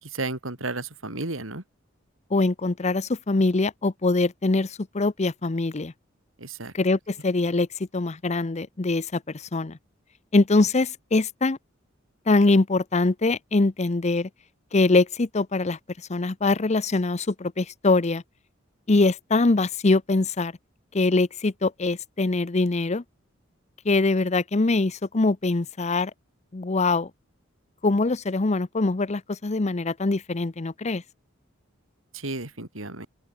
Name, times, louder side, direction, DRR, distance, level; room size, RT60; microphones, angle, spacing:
voice 1, 0.0-1.6 6.4-6.7 32.1-33.1, right 2 dB, 85° right, 3.9 m, -33 dB
voice 2, 2.3-5.9 6.7-7.7 7.9-9.8 10.3-11.6 12.3-14.3 14.7-15.8 16.1-18.2 18.9-20.5 20.9-23.0 23.8-26.1 26.5-27.1 27.8-31.0, left 3 dB, 35° left, 0.7 m, -23 dB
open air
head